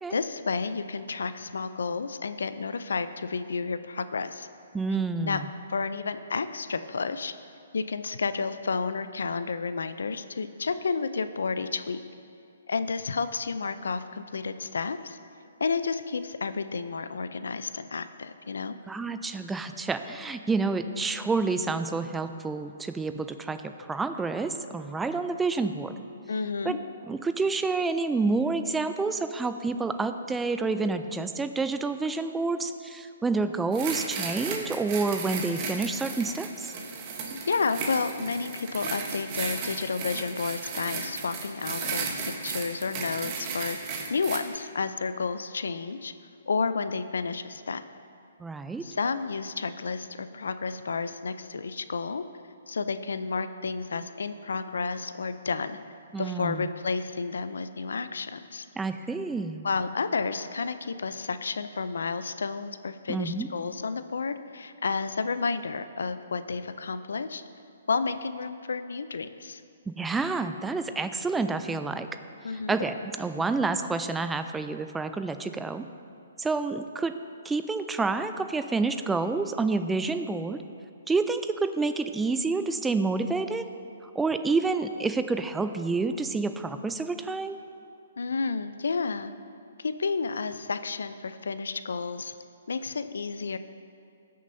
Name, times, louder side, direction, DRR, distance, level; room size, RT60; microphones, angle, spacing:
voice 1, 0.1-4.5 5.2-5.4 5.7-7.3 7.7-12.0 12.7-15.2 15.6-18.8 26.3-26.8 37.5-46.1 46.5-47.8 48.8-52.2 52.7-55.8 56.2-58.7 59.6-67.4 67.9-69.6 72.4-72.8 88.2-89.3 89.8-92.3 92.7-93.6, left 4 dB, 80° left, 11 dB, 0.4 m, -31 dB
voice 2, 4.7-5.5 18.9-25.9 26.6-26.8 27.0-36.7 48.4-48.9 56.1-56.7 58.8-59.6 63.1-63.5 69.9-72.1 72.7-75.8 76.4-77.1 77.4-80.6 81.1-83.6 84.0-87.6, right 3 dB, 10° right, 9 dB, 0.3 m, -29 dB
sound 1, 33.7-44.4, right 5 dB, 35° right, 1.0 m, -35 dB
16.5 x 6.5 x 2.7 m, 2.6 s
hypercardioid pair, 145°, 0 cm